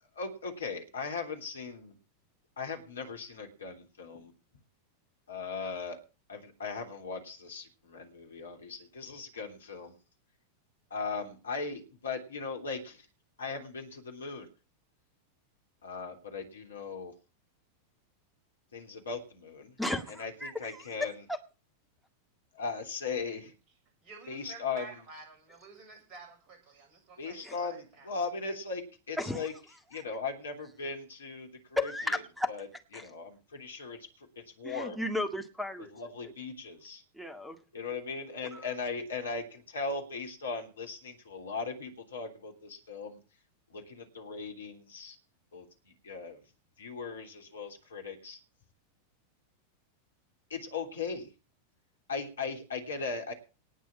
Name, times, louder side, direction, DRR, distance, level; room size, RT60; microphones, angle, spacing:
voice 1, 0.1-1.9 2.6-4.3 5.3-6.0 6.3-9.9 10.9-13.1 13.4-14.5 15.8-17.1 18.7-19.7 20.1-21.2 22.5-23.5 24.3-25.0 27.2-29.5 29.9-32.2 32.5-32.7 32.9-35.0 35.8-37.0 37.7-43.2 43.7-45.2 45.5-46.4 46.8-48.4 50.5-51.3 52.1-53.3, left 4 dB, 70° left, 4 dB, 3.3 m, -38 dB
voice 2, 19.8-20.7 21.3-21.4 27.4-27.5 29.2-29.4 31.8-32.5 32.9-33.0 34.6-35.9 37.2-37.6 38.5-38.6, left 1 dB, ahead, 9 dB, 2.0 m, -34 dB
voice 3, 24.0-28.2, right 3 dB, 35° right, 3 dB, 7.0 m, -50 dB
19.0 x 6.3 x 7.0 m, 0.34 s
figure-of-eight pair, 90°, 0 cm